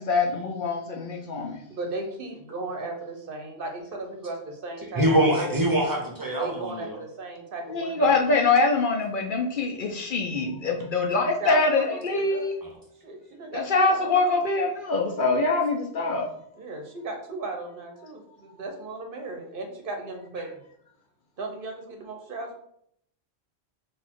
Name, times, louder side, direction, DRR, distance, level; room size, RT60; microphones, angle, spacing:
voice 1, 0.0-1.6 7.7-12.5 13.5-16.3, left 3 dB, 60° left, 1 dB, 0.7 m, -24 dB
voice 2, 1.7-5.4 6.4-8.4 11.4-12.5 13.0-14.2 16.5-20.5 21.4-22.6, right 2 dB, 60° right, 3 dB, 0.9 m, -36 dB
voice 3, 4.9-7.0 12.6-12.7, right 1 dB, 20° right, -1 dB, 0.9 m, -24 dB
4.0 x 2.6 x 4.5 m, 0.70 s
omnidirectional pair, 1.1 m